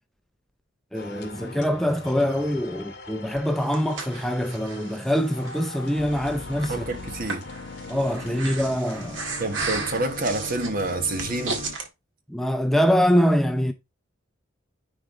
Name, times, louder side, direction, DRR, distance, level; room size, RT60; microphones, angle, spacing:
sound 1, 0.9-11.3, left 2 dB, 55° left, 1.8 m, -44 dB
voice 1, 0.9-6.8 7.9-9.2 12.3-13.7, equal, ahead, 0.5 m, -24 dB
Breathing, 3.4-11.9, right 3 dB, 70° right, 1.9 m, -35 dB
Organ, 6.0-11.8, left 3 dB, 75° left, 0.6 m, -39 dB
voice 2, 6.7-7.5 9.4-11.6, right 2 dB, 45° right, 1.3 m, -28 dB
10.0 x 3.4 x 3.8 m
head